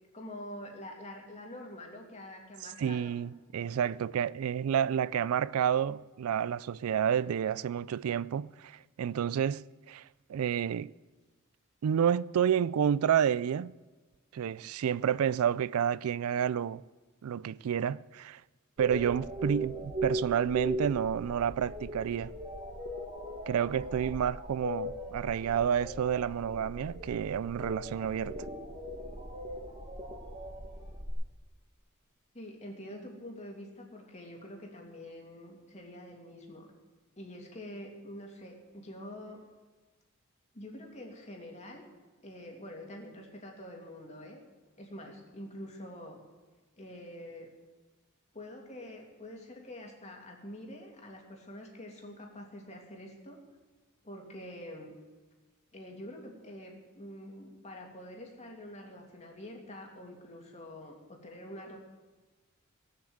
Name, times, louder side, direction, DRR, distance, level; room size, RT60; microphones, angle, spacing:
voice 1, 0.1-3.2 32.3-36.7 37.2-39.4 40.5-41.8 42.2-44.4 44.8-46.2 46.8-47.5 48.3-53.4 54.0-54.9 55.7-61.8, left 1 dB, 30° left, 2.5 m, -46 dB
voice 2, 2.8-10.0 10.3-10.9 11.8-13.7 14.3-16.8 17.2-18.4 18.8-22.3 23.5-28.4, right 8 dB, 85° right, 0.3 m, -30 dB
sound 1, 18.8-31.1, right 1 dB, 30° right, 2.0 m, -39 dB
18.0 x 7.5 x 7.9 m
head